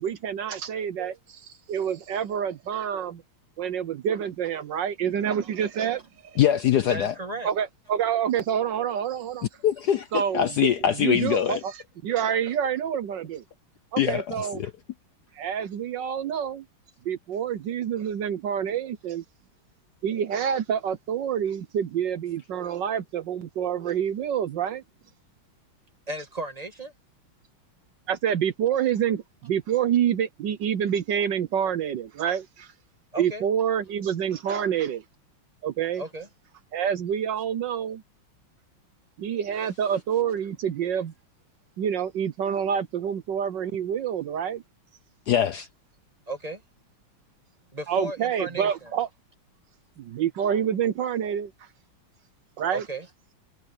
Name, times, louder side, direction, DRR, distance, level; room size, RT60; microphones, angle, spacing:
voice 1, 0.0-3.2 3.6-6.4 7.4-9.5 10.1-10.7 11.0-13.4 13.9-14.6 15.3-16.6 17.0-19.2 20.0-24.8 28.1-32.7 33.2-35.0 35.6-36.0 36.7-38.0 39.2-41.1 41.8-44.6 47.9-49.1 50.0-51.5 52.6-52.9, right 9 dB, 65° right, 1.4 m, -27 dB
voice 2, 6.4-7.1 9.6-11.6 14.0-14.7 45.3-45.7, left 10 dB, 65° left, 1.1 m, -23 dB
voice 3, 6.9-7.5 26.1-26.9 33.1-33.4 36.0-36.3 46.3-46.6 47.7-48.9 52.7-53.1, right 2 dB, 20° right, 1.8 m, -34 dB
omnidirectional pair, 2.3 m